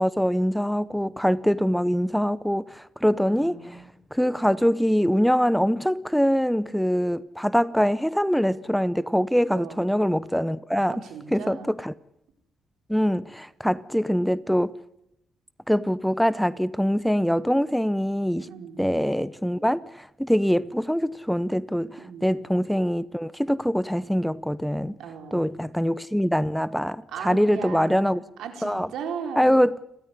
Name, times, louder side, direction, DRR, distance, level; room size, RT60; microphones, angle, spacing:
voice 1, 0.0-3.8 4.1-11.0 11.3-11.9 12.9-14.8 15.7-18.5 18.8-25.0 25.3-28.2 28.6-28.9 29.4-29.8, equal, ahead, 0.8 m, -23 dB
voice 2, 3.3-3.9 9.5-10.0 10.9-11.7 18.5-18.9 22.0-22.3 25.0-25.5 27.1-29.6, right 6 dB, 80° right, 4.5 m, -37 dB
29.5 x 13.0 x 9.8 m
cardioid pair, 90°, 0 cm